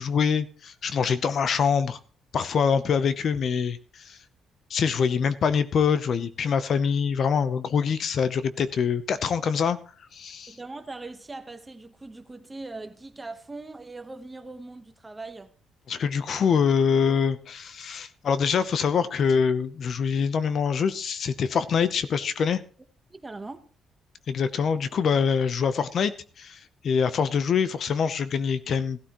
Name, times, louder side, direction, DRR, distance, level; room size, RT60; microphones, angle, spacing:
voice 1, 0.0-2.0 2.3-4.2 4.7-9.8 10.1-10.6 15.9-22.6 24.3-26.1 26.4-29.0, left 6 dB, 50° left, 0.7 m, -24 dB
voice 2, 10.5-15.5 23.1-23.6, right 3 dB, 15° right, 1.1 m, -40 dB
17.0 x 12.5 x 3.0 m
cardioid pair, 145°, 0 cm